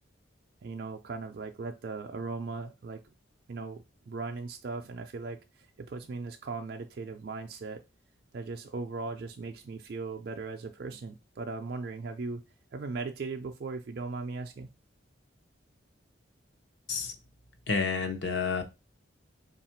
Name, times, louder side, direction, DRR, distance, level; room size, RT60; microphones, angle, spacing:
voice 1, 0.6-3.1 3.5-7.8 8.3-12.4 12.7-14.7, right 3 dB, 50° right, 3 dB, 0.4 m, -38 dB
voice 2, 17.7-18.6, left 5 dB, 60° left, 6 dB, 0.7 m, -29 dB
3.4 x 2.4 x 4.3 m, 0.25 s
head